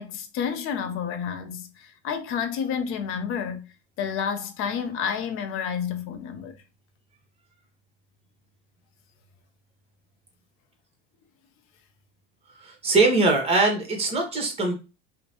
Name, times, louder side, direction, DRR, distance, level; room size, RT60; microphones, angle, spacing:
voice 1, 0.0-3.7 4.0-6.6, left 7 dB, 45° left, 0.6 m, -30 dB
voice 2, 12.6-14.7, right 3 dB, 20° right, 1.1 m, -22 dB
2.8 x 2.1 x 3.0 m
supercardioid pair, 105°, 29 cm